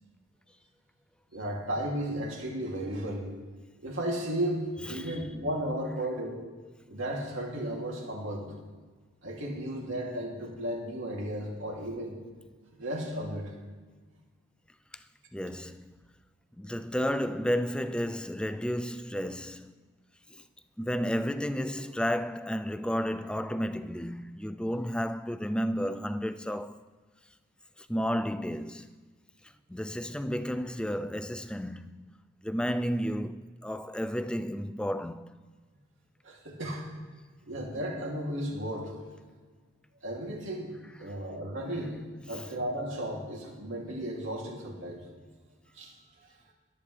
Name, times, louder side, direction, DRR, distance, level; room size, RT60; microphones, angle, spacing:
voice 1, 1.3-3.3 3.8-4.6 4.9-6.4 6.9-8.5 9.2-12.2 12.8-13.5 36.2-37.1 37.5-39.0 40.0-40.7 41.0-45.0 45.7-45.9, right 1 dB, 65° right, 2.8 m, -34 dB
voice 2, 15.3-16.0 16.6-19.8 20.8-26.8 27.9-28.9 29.7-32.1 32.4-35.4 42.3-42.5, equal, 5° left, 0.3 m, -32 dB
21.5 x 8.8 x 3.3 m
head